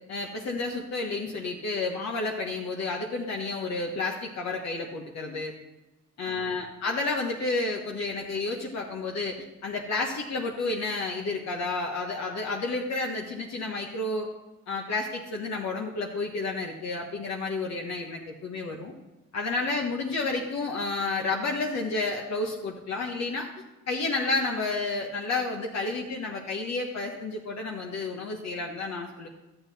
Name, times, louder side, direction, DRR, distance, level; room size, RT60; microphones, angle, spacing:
voice 1, 0.1-5.5 6.2-9.4 9.6-14.3 14.7-18.9 19.3-23.5 23.9-29.3, left 3 dB, 60° left, 0 dB, 1.3 m, -31 dB
12.0 x 8.1 x 4.2 m, 1.1 s
cardioid pair, 90°, 30 cm